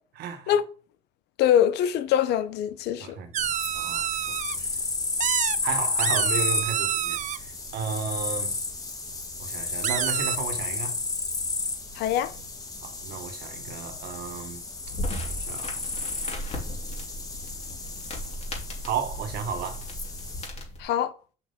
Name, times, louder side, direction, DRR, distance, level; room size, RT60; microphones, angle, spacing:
voice 1, 0.2-0.5 3.0-3.5 3.7-4.4 5.6-8.6 9.4-11.0 12.8-14.6 15.1-15.8 18.8-19.8, right 6 dB, 75° right, 1.8 m, -34 dB
voice 2, 1.4-3.2 12.0-12.3 20.8-21.1, left 10 dB, 85° left, 0.9 m, -23 dB
sound 1, 3.3-4.6 5.2-5.6 6.0-7.4 9.4-9.5 9.8-10.4, right 10 dB, 45° right, 0.5 m, -27 dB
sound 2, 3.4-20.5, left 3 dB, 20° left, 1.9 m, -32 dB
sound 3, 14.8-20.8, left 1 dB, 40° left, 3.2 m, -36 dB
6.9 x 6.0 x 3.7 m
cardioid pair, 110°, 17 cm